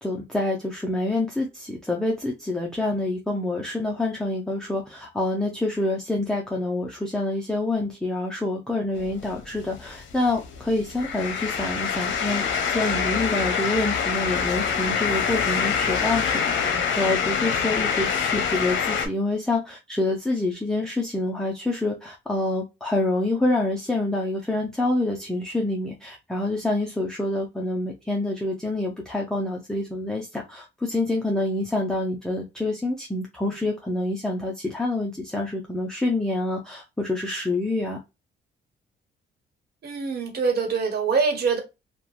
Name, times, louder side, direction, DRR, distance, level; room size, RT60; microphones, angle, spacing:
voice 1, 0.0-38.0, left 2 dB, 5° left, 0.6 m, -27 dB
sound 1, 9.0-19.1, left 6 dB, 70° left, 0.7 m, -25 dB
voice 2, 39.8-41.6, right 5 dB, 55° right, 1.3 m, -24 dB
2.9 x 2.4 x 2.4 m
cardioid pair, 90°, 20 cm